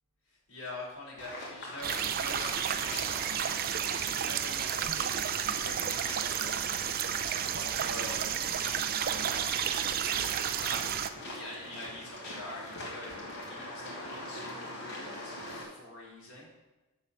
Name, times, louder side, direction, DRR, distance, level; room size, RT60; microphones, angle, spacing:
voice 1, 0.3-4.8 5.5-6.7 7.4-9.5 10.5-16.5, left 1 dB, 75° left, -7 dB, 3.7 m, -45 dB
sound 1, 1.2-15.6, left 1 dB, 50° left, 2.6 m, -43 dB
sound 2, 1.8-11.1, right 8 dB, 40° right, 0.5 m, -31 dB
7.3 x 7.0 x 6.5 m, 1.1 s
head